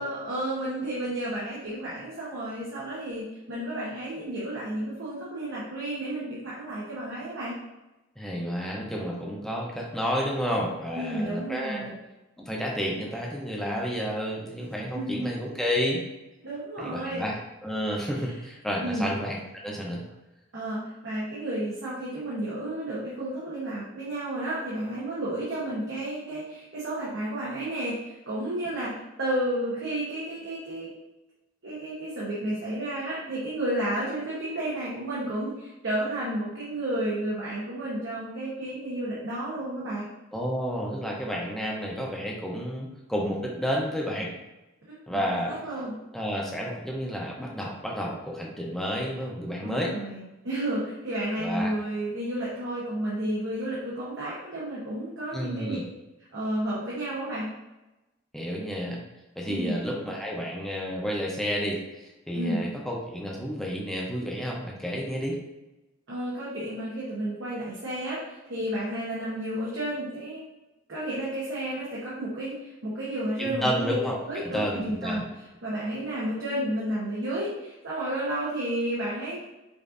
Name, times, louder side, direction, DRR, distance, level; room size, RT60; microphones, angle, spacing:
voice 1, 0.0-7.5 10.9-12.0 14.6-15.3 16.4-17.3 18.1-18.3 18.8-19.1 20.5-30.9 31.6-40.1 44.9-45.9 49.6-55.8 56.3-57.5 59.5-59.8 62.3-62.7 66.1-70.4 70.9-73.9 74.3-75.2 75.6-79.5, right 1 dB, 75° right, -8 dB, 0.9 m, -32 dB
voice 2, 8.2-11.9 12.4-16.0 16.8-17.4 17.6-19.4 19.6-20.0 40.3-44.3 45.1-45.5 46.1-49.9 51.4-51.7 55.3-55.8 58.3-59.0 59.4-65.4 73.4-75.2, equal, ahead, -3 dB, 0.6 m, -31 dB
5.2 x 2.5 x 2.5 m, 1.0 s
head